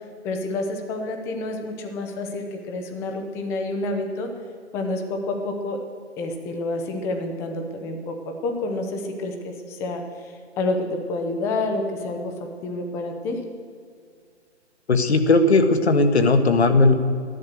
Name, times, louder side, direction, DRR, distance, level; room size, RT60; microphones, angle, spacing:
voice 1, 0.2-4.3 4.7-5.8 6.2-10.0 10.6-12.3 12.6-13.4, left 2 dB, 10° left, 4 dB, 0.6 m, -28 dB
voice 2, 14.9-16.9, left 3 dB, 65° left, 8 dB, 1.5 m, -17 dB
13.5 x 11.0 x 6.5 m, 2.2 s
figure-of-eight pair, 135°, 35 cm